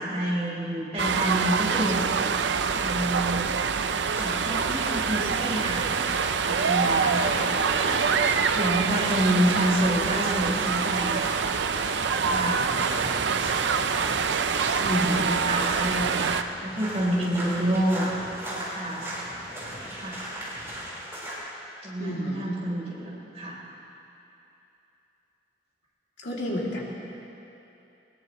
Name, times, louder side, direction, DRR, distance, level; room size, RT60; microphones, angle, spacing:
voice 1, 0.0-2.0 2.7-3.5 4.1-8.3 8.5-11.6 12.2-12.9 14.8-16.3 16.6-18.1 18.7-19.1 19.9-20.2 21.8-23.6, right 1 dB, 35° right, -5 dB, 3.8 m, -29 dB
sound 1, 1.0-16.4, right 6 dB, 85° right, 0.5 m, -25 dB
sound 2, 2.6-21.3, right 1 dB, 15° right, 4.5 m, -37 dB
voice 2, 14.8-15.4 22.0-22.6 26.2-26.8, left 1 dB, 85° left, -4 dB, 2.8 m, -30 dB
21.0 x 20.5 x 3.1 m, 2.9 s
head